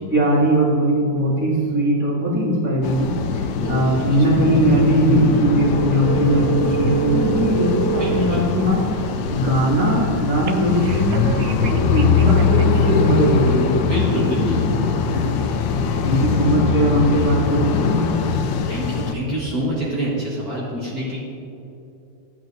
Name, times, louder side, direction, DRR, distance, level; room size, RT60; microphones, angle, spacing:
voice 1, 0.1-11.4 11.7-13.8 15.1-15.4 16.0-18.0, right 1 dB, 10° right, -8 dB, 2.2 m, -20 dB
sound 1, 2.8-19.1, left 6 dB, 80° left, 1.3 m, -22 dB
voice 2, 3.6-4.5 8.0-8.6 13.9-14.7 18.7-21.2, right 1 dB, 50° right, -6 dB, 1.9 m, -27 dB
sound 2, 6.0-8.3 10.5-12.9 13.2-13.5, right 9 dB, 70° right, 0.9 m, -27 dB
14.0 x 8.5 x 2.6 m, 2.8 s
omnidirectional pair, 2.1 m